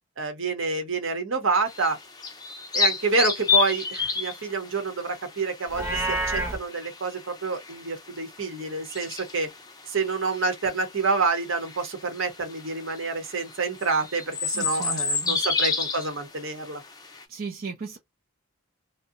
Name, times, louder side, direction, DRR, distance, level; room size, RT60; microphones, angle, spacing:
voice 1, 0.2-2.0 2.7-9.5 9.9-16.8, right 3 dB, 65° right, 0.8 m, -28 dB
sound 1, 1.7-17.2, left 5 dB, 20° left, 0.5 m, -30 dB
Livestock farm animals working animals, 5.7-6.6, right 2 dB, 10° right, 0.7 m, -27 dB
voice 2, 14.5-15.4 17.3-18.0, right 5 dB, 45° right, 0.4 m, -36 dB
2.7 x 2.1 x 2.4 m
head